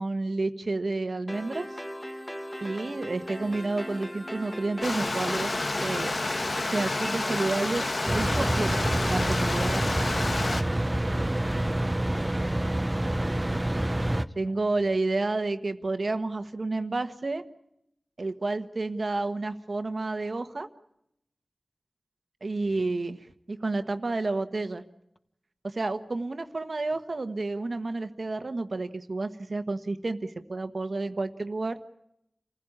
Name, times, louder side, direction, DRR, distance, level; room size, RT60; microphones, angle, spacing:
voice 1, 0.0-1.7 2.6-5.5 5.8-9.9 14.4-17.4 18.2-20.7 22.4-23.2 23.5-24.8 25.6-31.8, right 3 dB, 60° right, 9 dB, 1.3 m, -30 dB
sound 1, 1.3-9.3, equal, 10° left, 1.6 m, -39 dB
Stream, 4.8-10.6, left 2 dB, 55° left, 1.7 m, -29 dB
sound 2, 8.1-14.2, right 1 dB, 20° right, 1.0 m, -27 dB
voice 2, 14.1-15.0 22.6-22.9, left 1 dB, 25° left, 7 dB, 1.8 m, -51 dB
28.0 x 15.5 x 8.7 m, 0.80 s
wide cardioid pair, 60°, 0 cm